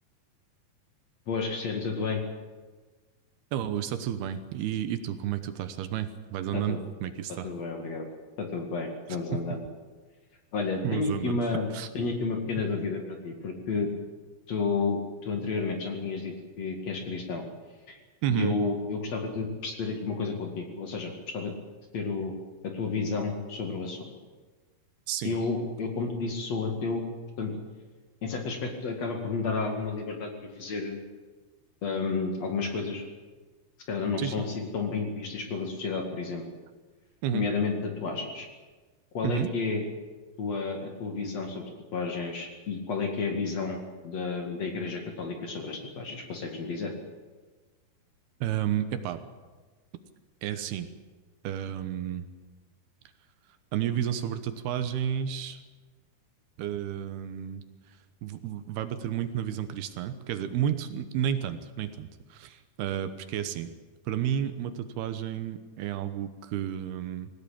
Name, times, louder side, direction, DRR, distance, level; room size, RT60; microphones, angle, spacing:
voice 1, 1.3-2.2 6.5-6.8 7.4-8.1 8.4-9.6 10.5-13.9 14.5-17.4 17.9-18.0 18.3-21.5 21.9-22.3 22.6-24.0 25.2-27.0 27.4-27.5 28.2-30.3 30.6-31.0 31.8-33.0 33.9-36.4 37.3-38.5 39.1-39.8 40.4-43.8 44.0-46.9, left 4 dB, 45° left, 3 dB, 2.9 m, -31 dB
voice 2, 3.5-7.5 9.3-9.4 10.8-11.4 11.7-11.9 18.2-18.6 25.1-25.3 34.2-34.4 37.2-37.5 39.2-39.5 48.4-49.2 50.4-50.9 51.4-52.3 53.7-55.6 56.6-57.6 58.2-63.7 64.1-67.3, right 10 dB, 75° right, 10 dB, 2.9 m, -31 dB
20.5 x 17.5 x 8.7 m, 1.3 s
omnidirectional pair, 4.8 m